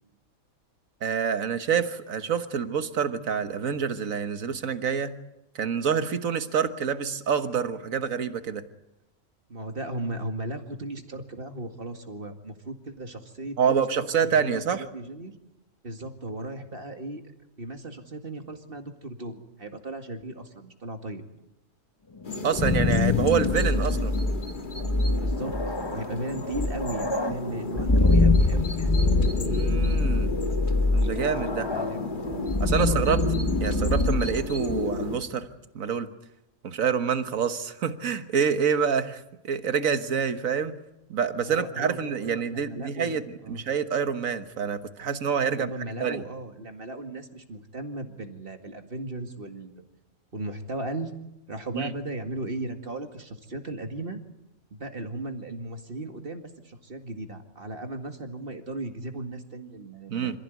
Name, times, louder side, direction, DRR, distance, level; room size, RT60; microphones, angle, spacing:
voice 1, 1.0-5.1 5.5-8.6 13.6-14.8 22.4-24.1 29.4-30.3 30.9-31.7 32.6-33.2 33.6-35.5 35.7-36.1 36.6-40.8 41.1-45.7 46.0-46.2 51.7-51.9 60.1-60.4, right 7 dB, 75° right, 10 dB, 1.7 m, -27 dB
voice 2, 9.5-15.3 15.8-17.2 17.6-21.2 25.2-25.6 25.9-28.9 31.7-32.1 32.8-33.0 41.3-43.6 45.6-49.9 50.3-51.1 51.5-54.2 54.7-60.4, right 2 dB, 40° right, 6 dB, 2.3 m, -36 dB
sound 1, 22.2-35.2, left 3 dB, 40° left, 1.6 m, -34 dB
sound 2, 22.3-35.2, left 2 dB, 20° left, 0.9 m, -25 dB
27.0 x 15.5 x 9.5 m, 0.90 s
omnidirectional pair, 1.4 m